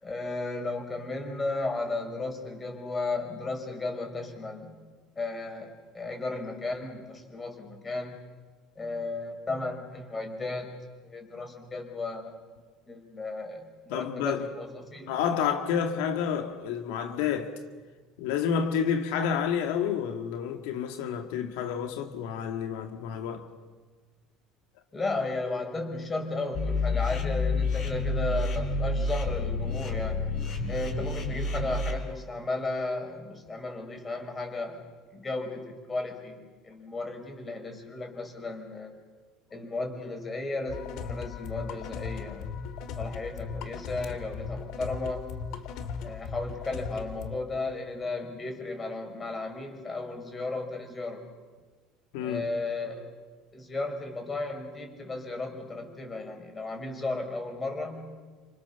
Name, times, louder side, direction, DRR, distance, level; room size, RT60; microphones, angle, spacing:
voice 1, 0.0-4.8 5.2-8.2 8.8-10.7 11.0-12.3 12.9-15.1 24.9-30.3 30.7-34.8 35.1-38.9 39.5-42.5 43.0-45.2 46.0-51.2 52.2-53.1 53.5-58.1, left 3 dB, 20° left, 5.8 m, -34 dB
voice 2, 13.9-14.4 15.1-17.6 18.2-23.5 52.1-52.5, left 7 dB, 85° left, 2.0 m, -29 dB
sound 1, 26.5-31.9, left 2 dB, 45° left, 5.4 m, -29 dB
sound 2, 40.7-47.4, left 6 dB, 65° left, 2.3 m, -37 dB
29.0 x 26.0 x 7.2 m
cardioid pair, 125°, 0 cm